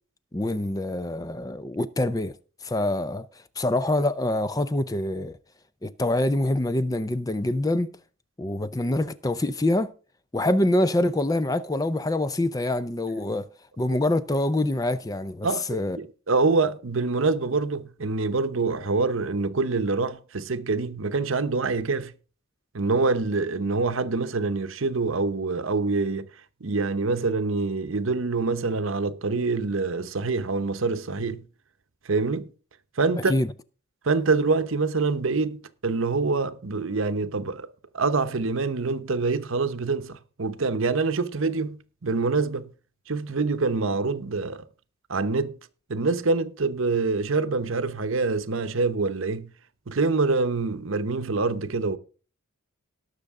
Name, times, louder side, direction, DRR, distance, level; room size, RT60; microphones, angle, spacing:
voice 1, 0.3-2.3 2.6-3.3 3.6-5.3 5.8-7.9 8.4-9.9 10.3-13.5 13.8-16.0 33.3-33.5, left 1 dB, 15° left, 0.5 m, -25 dB
voice 2, 15.4-22.1 22.7-26.3 26.6-31.4 32.0-32.5 33.0-33.3 34.0-37.7 37.9-42.7 43.1-44.6 45.1-45.6 45.9-49.5 49.9-52.0, right 3 dB, 70° right, 0.9 m, -25 dB
19.0 x 6.5 x 3.6 m
head